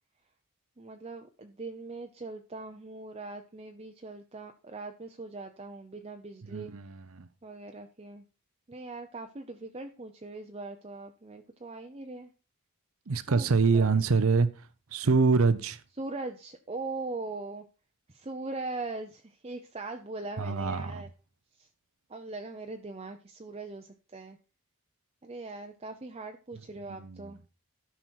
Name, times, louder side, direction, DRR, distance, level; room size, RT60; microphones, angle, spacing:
voice 1, 0.8-6.7 7.4-8.2 8.7-12.3 13.3-14.0 16.0-17.6 18.1-21.1 21.6-21.7 22.1-24.4 25.2-27.4, right 3 dB, 30° right, 0.7 m, -40 dB
voice 2, 6.5-7.3 13.1-14.5 14.9-15.8 20.4-21.0 26.9-27.3, right 4 dB, 75° right, 0.7 m, -25 dB
13.0 x 5.8 x 4.6 m
head